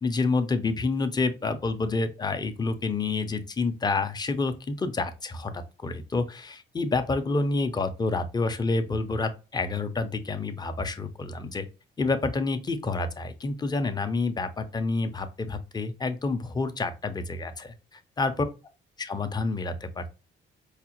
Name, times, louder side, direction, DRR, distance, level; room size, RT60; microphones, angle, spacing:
voice 1, 0.0-11.7 12.0-17.7 18.2-18.5 19.0-20.1, left 3 dB, 20° left, 0.5 m, -28 dB
4.8 x 2.0 x 2.9 m
cardioid pair, 90°, 20 cm